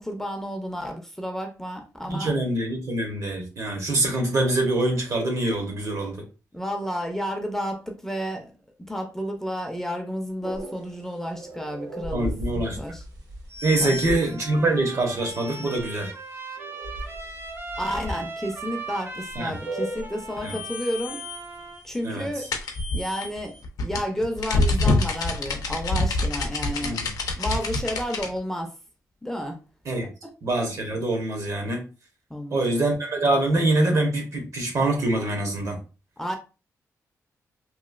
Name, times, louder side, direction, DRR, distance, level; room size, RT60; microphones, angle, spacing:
voice 1, 0.0-2.3 6.5-8.5 8.8-12.3 12.7-13.0 13.8-14.4 17.8-21.2 21.8-22.5 22.9-27.0 27.4-28.7 29.2-29.6 32.3-33.0 36.2-36.4, equal, 5° left, 3 dB, 0.6 m, -31 dB
voice 2, 2.1-6.2 12.1-12.8 13.6-16.1 19.3-19.5 20.4-20.6 22.0-22.3 26.8-27.1 29.9-30.1 30.4-31.8 32.5-35.8, right 2 dB, 60° right, 3 dB, 1.1 m, -24 dB
sound 1, 10.4-14.5 15.3-15.8 16.6-18.2 19.3-23.6, equal, 80° right, 1.1 m, -36 dB
Trumpet, 14.2-21.8, right 3 dB, 35° right, 0.6 m, -39 dB
sound 2, 22.5-28.3, left 2 dB, 80° left, 0.5 m, -25 dB
3.0 x 2.4 x 2.4 m, 0.32 s
cardioid pair, 90°, 6 cm